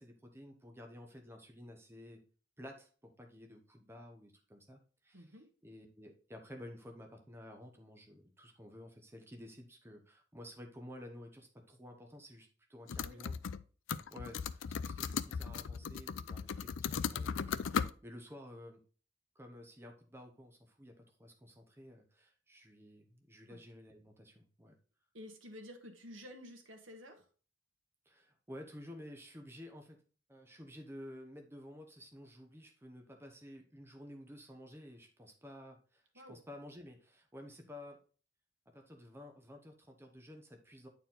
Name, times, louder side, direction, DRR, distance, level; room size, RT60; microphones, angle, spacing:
voice 1, 0.0-2.2 2.6-5.2 5.6-13.3 14.1-18.8 19.3-24.7 28.1-30.0 30.3-36.0 36.3-38.0 38.7-40.9, left 1 dB, 15° right, 3 dB, 1.0 m, -52 dB
voice 2, 5.1-5.5 13.0-13.2 23.5-23.6 25.1-27.3 36.1-36.4, left 1 dB, 80° right, 4 dB, 1.6 m, -51 dB
sound 1, 12.9-13.6 13.9-17.9, left 6 dB, 75° left, 0.4 m, -37 dB
9.1 x 4.5 x 3.8 m, 0.39 s
head